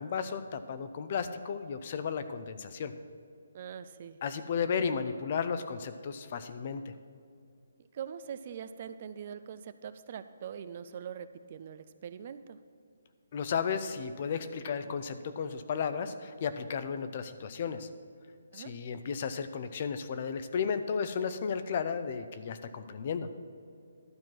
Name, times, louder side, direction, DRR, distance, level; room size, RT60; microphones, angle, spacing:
voice 1, 0.0-2.9 4.2-6.9 13.3-17.9 18.5-23.3, left 6 dB, 40° left, 10 dB, 0.6 m, -34 dB
voice 2, 3.5-4.2 7.9-12.6 18.5-18.7, right 8 dB, 40° right, 12 dB, 0.4 m, -43 dB
12.0 x 4.5 x 7.6 m, 2.4 s
hypercardioid pair, 155°, 0 cm